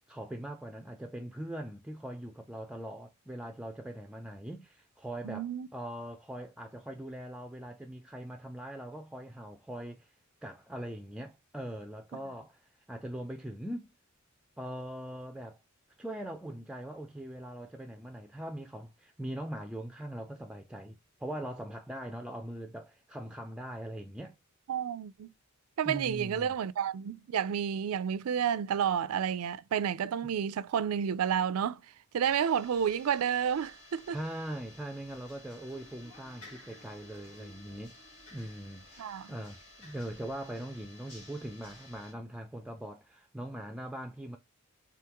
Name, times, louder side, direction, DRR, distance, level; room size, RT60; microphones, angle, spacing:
voice 1, 0.1-10.1 10.4-13.9 14.6-15.6 16.0-24.4 25.8-26.5 34.1-38.0 38.3-44.4, right 1 dB, 5° right, 0.3 m, -41 dB
voice 2, 5.2-5.7 24.7-25.3 25.8-31.8 32.1-34.2 39.0-39.3, right 8 dB, 75° right, 0.4 m, -30 dB
sound 1, 32.2-42.1, left 1 dB, 90° left, 2.0 m, -54 dB
3.6 x 3.5 x 2.9 m
head